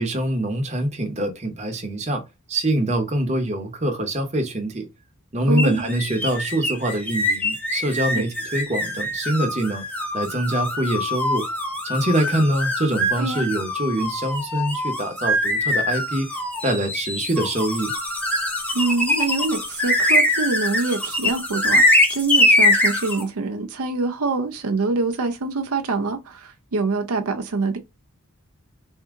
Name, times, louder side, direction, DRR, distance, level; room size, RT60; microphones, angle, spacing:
voice 1, 0.0-2.2 2.5-4.9 5.3-9.8 10.1-11.4 11.8-16.3 16.6-17.9, right 1 dB, 30° right, 0.9 m, -24 dB
voice 2, 5.5-5.8 8.1-8.3 13.2-13.5 18.7-27.8, right 3 dB, 80° right, 0.6 m, -25 dB
sound 1, 5.6-23.2, left 1 dB, 5° left, 0.7 m, -23 dB
3.5 x 2.7 x 3.6 m
head